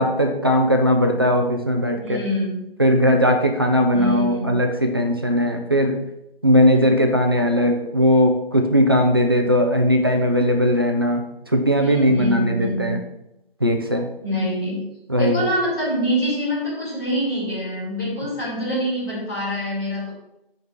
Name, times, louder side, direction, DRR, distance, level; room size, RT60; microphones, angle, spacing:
voice 1, 0.0-2.2 2.8-6.0 6.4-13.0 13.6-14.1 15.1-15.4, equal, 25° right, 3 dB, 0.7 m, -19 dB
voice 2, 1.9-2.6 3.9-4.5 11.7-12.9 14.2-14.8 15.2-20.1, equal, 20° left, -9 dB, 3.1 m, -25 dB
6.8 x 5.3 x 6.2 m, 0.84 s
figure-of-eight pair, 170°, 30 cm